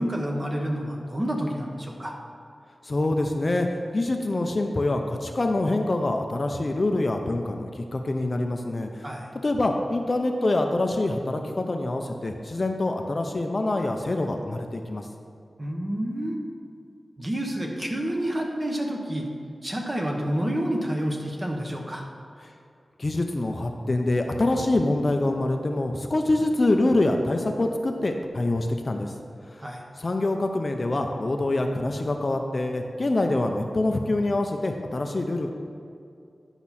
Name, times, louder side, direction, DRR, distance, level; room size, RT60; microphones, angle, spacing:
voice 1, 0.0-2.1 9.0-9.3 15.6-16.4 17.2-19.2 19.6-22.0 29.6-29.8, equal, 25° right, 0 dB, 1.2 m, -29 dB
voice 2, 2.8-3.7 3.9-9.1 9.4-15.1 23.0-29.1 29.5-29.6 30.0-35.5, left 2 dB, 40° left, 4 dB, 0.6 m, -25 dB
10.5 x 5.9 x 4.2 m, 2.4 s
wide cardioid pair, 110°, 0 cm